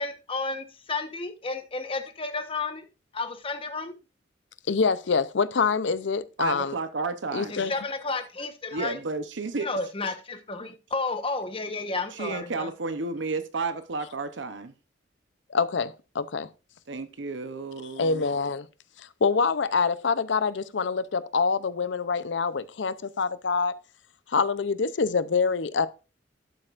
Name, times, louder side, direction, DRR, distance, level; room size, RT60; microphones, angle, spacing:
voice 1, 0.0-2.8 3.1-3.9 7.5-9.0 9.6-12.7, left 3 dB, 30° left, 1.1 m, -32 dB
voice 2, 4.7-6.8 7.3-7.7 15.5-16.5 18.0-18.7 19.0-23.7 24.3-25.9, left 5 dB, 80° left, 0.6 m, -25 dB
voice 3, 6.4-7.5 8.7-9.7 12.1-14.7 16.9-18.2, right 3 dB, 85° right, 0.8 m, -32 dB
12.0 x 7.8 x 2.5 m
head